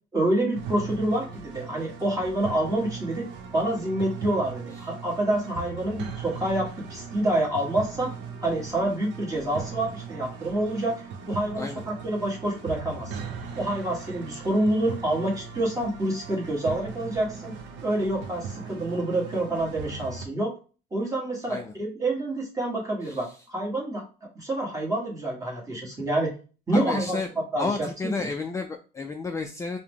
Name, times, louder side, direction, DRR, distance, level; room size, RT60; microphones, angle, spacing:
voice 1, 0.1-3.2 3.5-8.1 8.4-13.3 13.6-17.5 17.8-20.5 20.9-24.0 24.3-26.3 26.7-27.2 27.5-27.9 28.2-28.3, right 1 dB, 15° right, -2 dB, 1.4 m, -27 dB
sound 1, 0.5-20.3, right 6 dB, 70° right, 0.8 m, -39 dB
voice 2, 23.0-23.4 26.7-27.3 27.6-29.8, left 4 dB, 15° left, 4 dB, 0.3 m, -32 dB
4.7 x 2.1 x 3.5 m, 0.36 s
cardioid pair, 125°, 19 cm